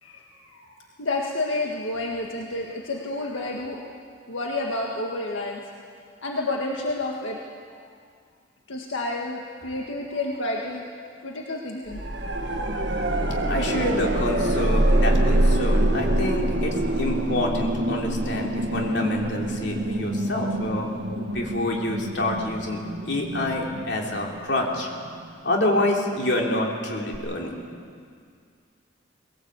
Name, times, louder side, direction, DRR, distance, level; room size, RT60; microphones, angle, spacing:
voice 1, 0.0-3.9 4.3-5.6 6.2-7.4 8.7-10.9 11.2-12.0, left 2 dB, 85° left, -1 dB, 1.8 m, -30 dB
sound 1, 11.9-24.8 27.1-27.2, right 1 dB, 60° right, 1.7 m, -25 dB
voice 2, 13.4-24.9 25.4-27.5, left 1 dB, 60° left, -1 dB, 3.2 m, -27 dB
20.5 x 17.5 x 8.3 m, 2.2 s
head